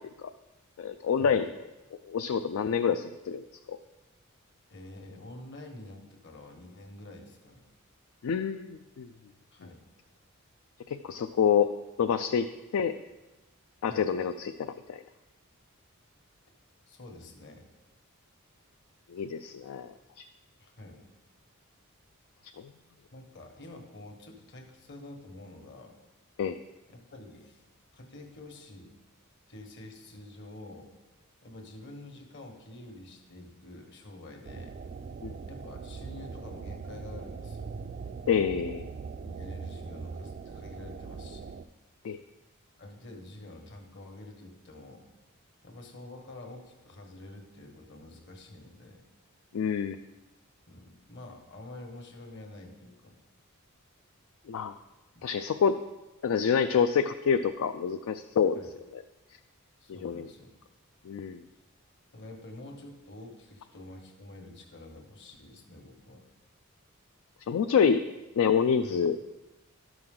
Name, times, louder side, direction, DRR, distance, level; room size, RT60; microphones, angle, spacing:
voice 1, 0.8-1.5 2.0-3.8 8.2-9.1 10.9-11.7 12.0-12.5 12.7-12.9 13.8-15.0 19.1-19.9 26.4-26.6 35.2-35.3 38.3-38.9 42.0-42.2 49.5-50.0 54.5-54.7 55.2-55.8 56.2-58.6 58.9-59.0 60.0-60.3 61.1-61.4 67.5-68.0 68.4-69.2, left 7 dB, 70° left, 8 dB, 0.3 m, -27 dB
voice 2, 4.7-7.6 9.5-9.8 13.8-14.1 16.9-17.7 20.6-21.0 23.1-25.9 26.9-27.6 27.9-28.9 29.5-30.9 31.4-34.7 35.4-37.7 38.8-38.9 39.2-41.5 42.8-45.1 45.6-49.0 50.7-53.2 55.1-55.2 58.6-58.7 59.8-60.5 62.1-66.2 68.8-69.0, left 1 dB, 55° left, 3 dB, 1.4 m, -47 dB
sound 1, 34.4-41.6, right 5 dB, 40° right, 0.3 m, -41 dB
12.0 x 6.2 x 3.8 m, 1.1 s
head